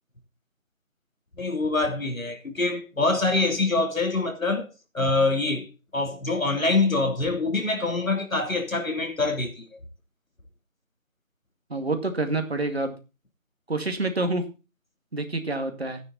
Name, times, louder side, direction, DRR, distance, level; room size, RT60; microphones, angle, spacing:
voice 1, 1.4-4.7 4.9-5.7 5.9-9.6, left 3 dB, 80° left, 3.3 m, -25 dB
voice 2, 11.7-13.0 13.7-14.5 15.1-16.0, right 2 dB, 50° right, 2.2 m, -27 dB
12.0 x 9.7 x 4.0 m
figure-of-eight pair, 175°, 40 cm